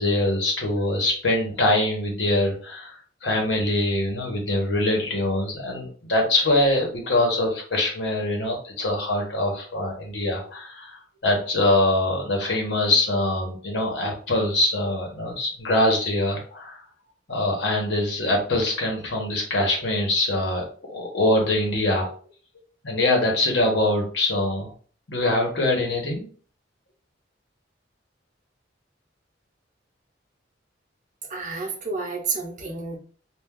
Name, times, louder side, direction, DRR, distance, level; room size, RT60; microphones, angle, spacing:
voice 1, 0.0-16.8 17.3-22.1 22.8-24.7 25.1-26.3, left 1 dB, 70° left, 0 dB, 1.1 m, -23 dB
voice 2, 31.3-33.0, right 4 dB, 45° right, 1 dB, 0.8 m, -30 dB
2.4 x 2.3 x 3.6 m, 0.43 s
head